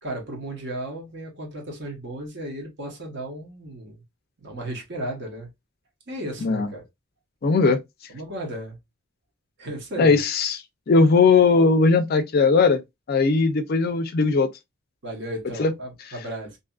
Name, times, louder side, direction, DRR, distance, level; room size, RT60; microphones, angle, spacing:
voice 1, 0.0-4.0 4.4-5.5 6.1-6.8 8.1-8.8 9.6-10.2 15.0-16.6, right 1 dB, 55° right, 1.0 m, -34 dB
voice 2, 7.4-7.8 10.0-10.6 10.9-12.8 13.1-14.5 15.6-15.7, left 4 dB, 45° left, 0.4 m, -18 dB
2.6 x 2.4 x 2.2 m
head